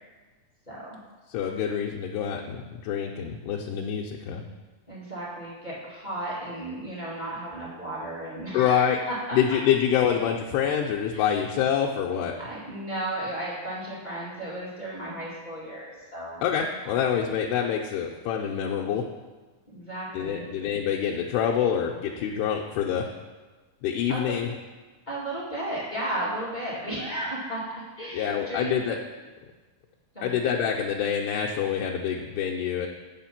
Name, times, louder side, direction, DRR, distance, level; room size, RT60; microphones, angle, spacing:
voice 1, 0.7-1.0 4.9-9.4 11.1-11.4 12.4-16.4 16.8-17.0 19.7-20.5 24.1-24.3 25.1-27.6 28.0-28.7 30.1-30.3, right 1 dB, 15° left, -8 dB, 1.5 m, -34 dB
voice 2, 1.3-4.4 8.5-9.0 9.3-12.3 16.4-19.0 20.1-23.1 23.8-24.5 28.1-29.0 30.2-32.9, left 8 dB, 90° left, -2 dB, 2.7 m, -26 dB
7.5 x 7.3 x 5.8 m, 1.3 s
omnidirectional pair, 4.5 m